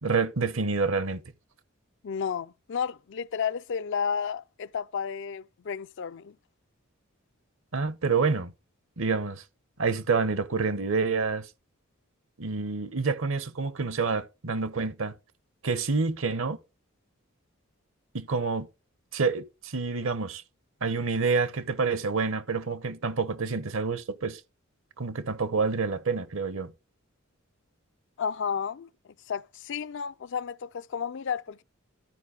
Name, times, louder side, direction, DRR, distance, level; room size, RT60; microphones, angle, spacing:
voice 1, 0.0-1.2 7.7-8.5 9.0-9.4 9.8-11.5 12.4-15.1 15.6-16.6 18.1-18.7 19.1-20.4 20.8-24.4 25.0-26.7, right 4 dB, 70° right, 0.9 m, -28 dB
voice 2, 2.0-6.4 28.2-28.9 29.3-31.6, left 7 dB, 60° left, 0.4 m, -32 dB
12.5 x 4.8 x 5.0 m
head